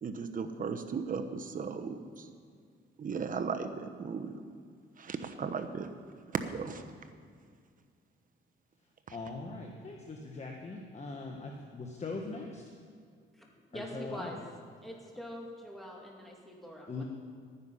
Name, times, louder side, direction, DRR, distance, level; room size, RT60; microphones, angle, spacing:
voice 1, 0.0-2.3 3.0-4.4 5.0-5.9 6.3-6.8 9.1-9.2, right 5 dB, 45° right, 7 dB, 1.0 m, -36 dB
voice 2, 9.1-12.6 13.7-14.4 16.9-17.0, left 3 dB, 35° left, 1 dB, 1.3 m, -41 dB
voice 3, 13.7-14.4 14.8-17.0, equal, ahead, -2 dB, 2.6 m, -44 dB
12.0 x 9.8 x 5.7 m, 2.2 s
cardioid pair, 90°, 20 cm